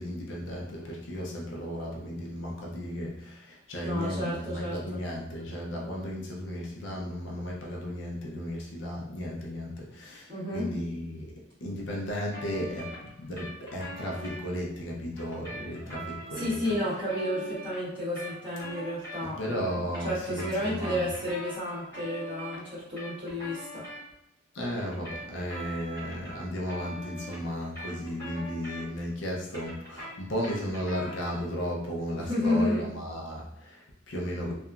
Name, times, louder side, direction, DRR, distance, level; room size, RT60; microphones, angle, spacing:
voice 1, 0.0-11.3 11.6-16.8 19.2-21.1 24.5-34.5, equal, 55° left, -2 dB, 0.5 m, -35 dB
voice 2, 3.8-5.0 10.3-10.7 16.3-23.9 32.2-32.9, left 1 dB, 25° right, -11 dB, 1.3 m, -31 dB
sound 1, 12.3-14.4 15.2-19.5 19.8-24.0 24.8-29.1 29.4-31.5, equal, 15° left, 1.1 m, -42 dB
2.8 x 2.3 x 2.3 m, 0.80 s
head